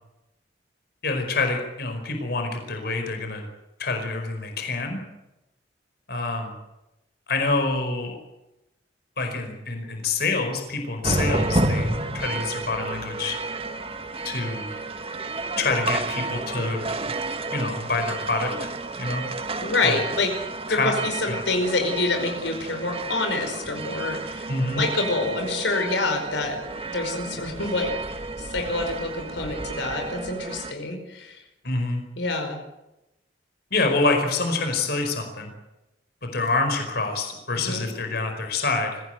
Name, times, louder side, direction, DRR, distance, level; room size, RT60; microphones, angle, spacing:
voice 1, 1.0-3.4 3.8-5.0 6.1-6.5 7.3-8.2 9.2-13.4 14.2-14.7 15.6-16.8 17.5-18.7 19.0-19.2 19.8-20.0 20.7-20.9 21.3-21.4 24.5-24.9 31.6-32.0 33.7-35.5 36.2-39.0, left 3 dB, 60° left, 4 dB, 5.0 m, -26 dB
sound 1, 11.0-30.7, right 2 dB, 35° right, 1.7 m, -31 dB
voice 2, 19.6-20.3 20.7-26.6 26.9-31.4 32.2-32.6 37.5-37.9, left 3 dB, 90° left, 4 dB, 5.1 m, -27 dB
24.0 x 16.0 x 9.2 m, 0.94 s
head